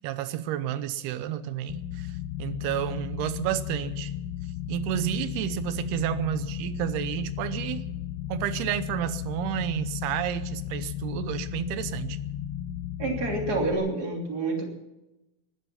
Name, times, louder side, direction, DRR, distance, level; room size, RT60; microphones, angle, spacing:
voice 1, 0.0-4.1 4.7-7.9 8.3-12.2, right 12 dB, 85° right, 2.9 m, -31 dB
sound 1, 1.7-13.7, left 11 dB, 90° left, 3.2 m, -35 dB
voice 2, 13.0-14.9, right 3 dB, 25° right, 3.0 m, -28 dB
19.5 x 11.5 x 5.9 m
omnidirectional pair, 4.5 m